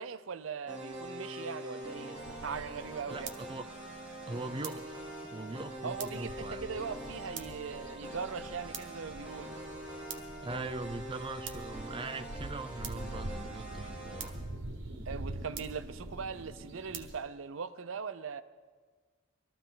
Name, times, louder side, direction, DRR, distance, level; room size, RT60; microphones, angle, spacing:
voice 1, 0.0-3.3 5.8-9.6 15.1-18.4, right 6 dB, 85° right, 0.6 m, -40 dB
sound 1, 0.7-14.3, right 1 dB, 5° right, 3.0 m, -44 dB
sound 2, 2.2-17.1, right 2 dB, 65° right, 1.4 m, -45 dB
voice 2, 3.1-3.7 4.3-5.0 5.3-6.7 10.4-14.4, right 3 dB, 25° right, 0.5 m, -41 dB
22.0 x 13.5 x 3.9 m
head